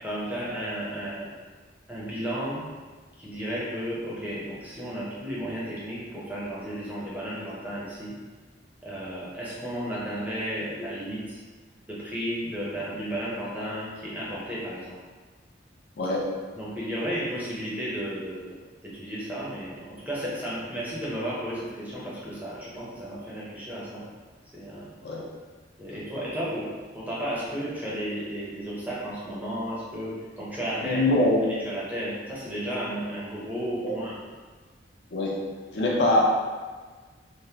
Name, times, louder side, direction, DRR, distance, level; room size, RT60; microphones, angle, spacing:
voice 1, 0.0-1.3 1.9-2.6 3.2-8.1 8.8-11.4 11.9-15.0 16.6-18.4 18.8-24.0 24.5-24.9 25.8-31.0 31.4-34.2, equal, 10° right, -7 dB, 0.6 m, -33 dB
voice 2, 16.0-16.3 25.0-25.2 30.9-31.4 33.8-34.0 35.1-35.4 35.7-36.2, left 1 dB, 60° left, -3 dB, 0.5 m, -23 dB
3.4 x 2.0 x 2.8 m, 1.4 s
head